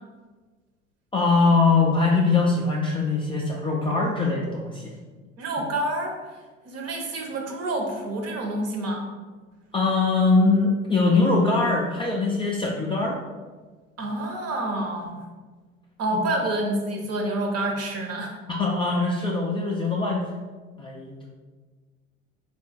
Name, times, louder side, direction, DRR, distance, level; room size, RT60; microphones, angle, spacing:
voice 1, 1.1-4.9 9.7-13.2 16.1-16.2 18.5-20.3 20.8-21.3, left 3 dB, 15° left, -3 dB, 0.4 m, -22 dB
voice 2, 5.4-6.2 6.6-9.1 14.0-15.2 16.0-18.4, right 1 dB, 40° right, 2 dB, 0.9 m, -28 dB
4.1 x 2.4 x 4.2 m, 1.3 s
figure-of-eight pair, 70°, 40 cm